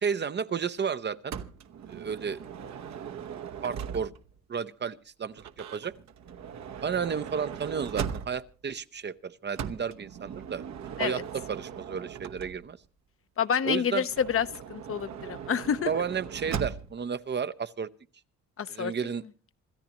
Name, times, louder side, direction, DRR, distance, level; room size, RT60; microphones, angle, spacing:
voice 1, 0.0-1.4 1.9-2.4 3.3-4.1 4.5-5.9 6.8-10.6 11.0-12.8 13.6-14.1 15.9-17.9 18.7-19.2, right 6 dB, 35° right, 0.7 m, -32 dB
Motor vehicle (road) / Sliding door, 1.3-4.4 5.3-8.6 9.5-12.9 14.1-17.0, right 8 dB, 65° right, 1.1 m, -39 dB
voice 2, 13.4-15.9 18.6-18.9, left 7 dB, 45° left, 0.8 m, -28 dB
27.0 x 13.5 x 3.0 m
cardioid pair, 90°, 30 cm